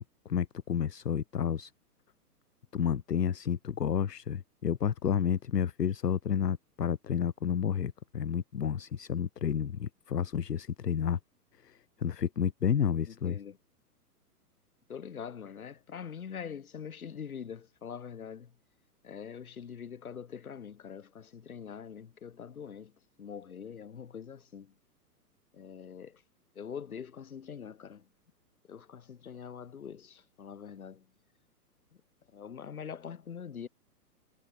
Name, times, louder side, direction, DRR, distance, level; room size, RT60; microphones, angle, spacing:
voice 1, 0.0-1.7 2.7-11.2 11.6-13.4, left 8 dB, 80° left, 0.7 m, -31 dB
voice 2, 13.0-13.6 14.9-18.6 19.0-24.8 25.5-26.2 26.5-28.1 28.6-31.1 32.3-33.7, left 7 dB, 60° left, 2.8 m, -44 dB
figure-of-eight pair, 115°, 47 cm